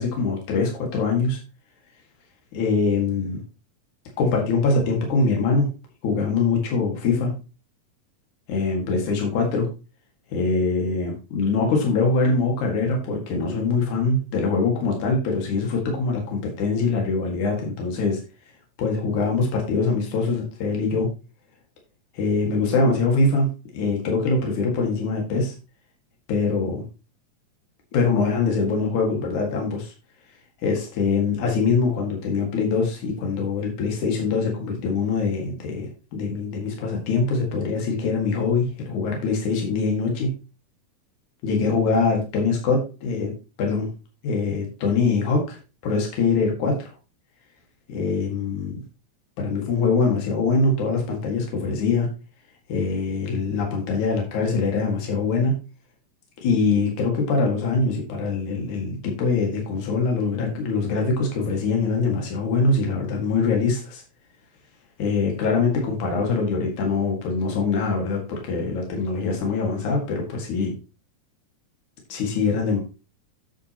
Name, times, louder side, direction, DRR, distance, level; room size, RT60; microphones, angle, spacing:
voice 1, 0.0-1.4 2.5-3.4 4.2-5.7 6.0-7.3 8.5-9.7 10.3-18.2 18.8-21.1 22.1-23.5 23.7-25.5 26.3-26.8 27.9-29.9 30.6-40.3 41.4-43.9 44.2-45.6 45.8-46.9 47.9-48.8 49.4-52.1 52.7-55.5 56.4-64.0 65.0-70.7 72.1-72.8, left 4 dB, 80° left, 1 dB, 3.3 m, -23 dB
9.2 x 8.1 x 2.9 m, 0.31 s
omnidirectional pair, 3.4 m